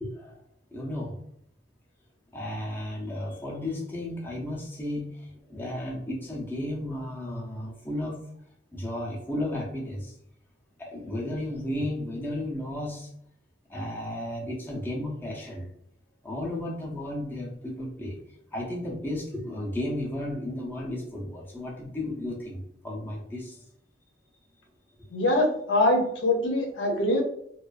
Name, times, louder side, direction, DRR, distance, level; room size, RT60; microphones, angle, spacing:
voice 1, 0.0-0.4 0.7-1.2 2.3-8.2 8.7-10.2 10.8-13.1 13.7-15.7 16.2-18.2 18.5-23.6, left 1 dB, 10° left, -4 dB, 0.5 m, -34 dB
voice 2, 25.1-27.2, left 1 dB, 85° left, 1 dB, 0.6 m, -23 dB
2.3 x 2.2 x 2.4 m, 0.71 s
head